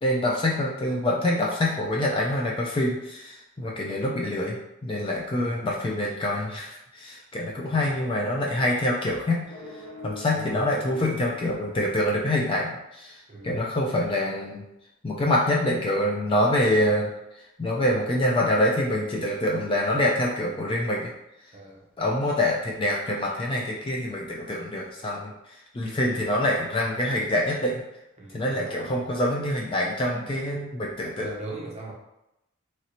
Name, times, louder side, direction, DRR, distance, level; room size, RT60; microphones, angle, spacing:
voice 1, 0.0-9.4 10.0-13.2 13.4-14.6 15.0-17.1 17.6-21.1 22.0-25.3 25.7-27.8 28.3-31.3, left 1 dB, 25° left, -2 dB, 0.3 m, -25 dB
voice 2, 7.6-7.9 10.3-10.6 13.3-13.6 21.5-21.8 25.8-26.0 28.2-29.1 31.2-31.9, right 2 dB, 30° right, -2 dB, 0.6 m, -40 dB
sound 1, 9.4-12.3, left 1 dB, 50° left, 1.3 m, -42 dB
3.1 x 2.6 x 2.9 m, 0.89 s
head